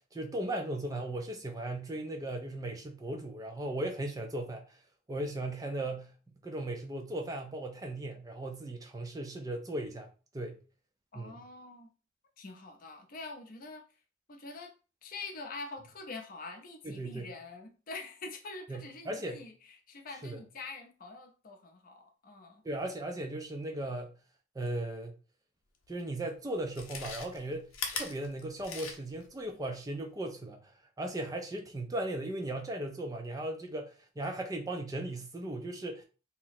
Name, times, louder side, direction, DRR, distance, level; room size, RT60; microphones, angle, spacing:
voice 1, 0.0-4.8 5.1-6.1 6.4-10.1 10.3-10.6 11.1-11.3 16.8-17.3 18.7-19.4 20.2-20.4 22.6-24.2 24.5-25.2 25.9-30.7 31.0-36.0, right 1 dB, 15° right, 0.3 m, -37 dB
voice 2, 11.1-11.9 12.4-13.8 14.3-14.7 15.0-22.6, left 3 dB, 45° left, 0.5 m, -45 dB
Chewing mastication, 25.8-25.9 26.6-29.3 29.6-29.7, left 5 dB, 90° left, 0.7 m, -40 dB
2.8 x 2.0 x 4.0 m
head